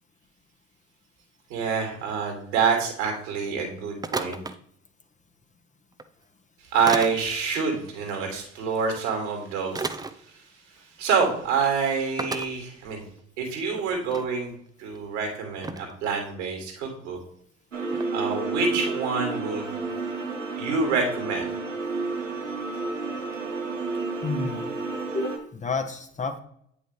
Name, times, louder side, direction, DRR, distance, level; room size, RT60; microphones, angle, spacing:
voice 1, 1.5-4.4 6.7-10.0 10.3-10.4 11.0-13.0 13.4-14.5 14.8-17.2 18.1-19.8 20.6-21.5, right 5 dB, 70° right, 2 dB, 2.3 m, -27 dB
sound 1, 4.0-4.6 5.9-6.0 6.9-7.2 8.9-9.0 9.7-10.1 11.0-11.1 11.4-11.5 12.2-12.5 13.2-13.3 13.7-14.3 14.9-15.0 15.6-15.9 17.9-18.1, right 3 dB, 10° right, 0.5 m, -32 dB
sound 2, 17.7-25.4, right 3 dB, 90° right, 0.8 m, -31 dB
voice 2, 24.2-24.7 25.1-26.4, left 3 dB, 20° left, 6 dB, 0.8 m, -30 dB
8.7 x 5.5 x 3.2 m, 0.68 s
figure-of-eight pair, 60°, 37 cm